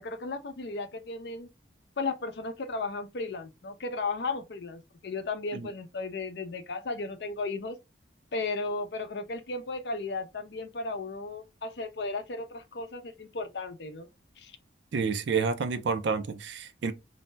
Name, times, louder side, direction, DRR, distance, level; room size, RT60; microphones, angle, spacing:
voice 1, 0.0-1.5 2.0-7.8 8.3-14.1 14.4-14.5, left 3 dB, 65° left, 0.5 m, -35 dB
voice 2, 14.9-16.9, right 5 dB, 75° right, 0.4 m, -29 dB
2.6 x 2.1 x 3.2 m
head